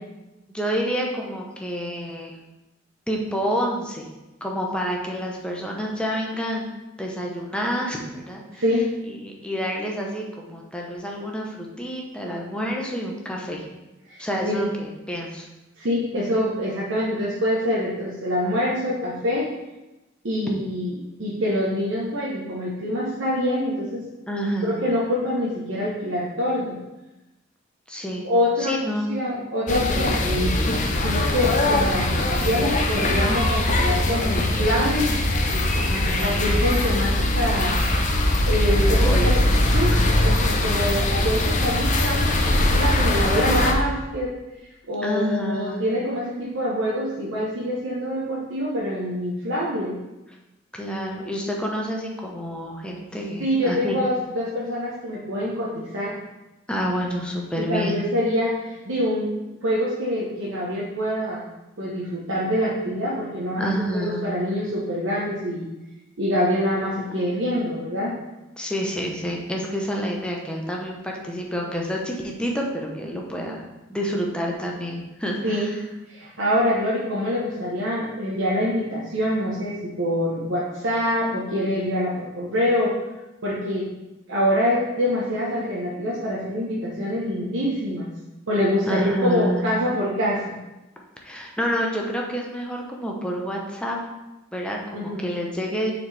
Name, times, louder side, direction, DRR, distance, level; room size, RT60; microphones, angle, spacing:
voice 1, 0.5-2.3 3.1-4.0 4.4-6.7 7.0-8.6 9.1-13.6 14.2-15.5 24.3-24.8 27.9-28.3 28.6-29.1 35.9-36.4 38.9-39.3 39.9-40.1 45.0-45.9 50.7-54.0 56.7-58.0 63.6-64.3 68.6-73.6 73.9-75.8 88.9-89.6 91.2-94.0 94.5-95.9, equal, 5° left, -1 dB, 0.8 m, -28 dB
voice 2, 8.5-8.9 14.1-14.6 15.8-19.5 20.2-24.0 24.6-26.8 28.2-28.8 29.1-30.6 31.0-35.2 36.2-37.8 38.5-39.4 39.7-39.9 40.2-44.3 44.9-49.9 53.4-56.2 57.6-59.3 59.6-61.5 61.8-65.7 66.2-68.1 75.4-75.7 76.1-82.9 83.4-83.8 84.3-88.1 88.5-90.5 94.9-95.3, equal, 80° right, -6 dB, 1.0 m, -25 dB
sound 1, 29.7-43.7, left 1 dB, 40° left, 0.6 m, -21 dB
6.8 x 4.3 x 3.4 m, 1.0 s
head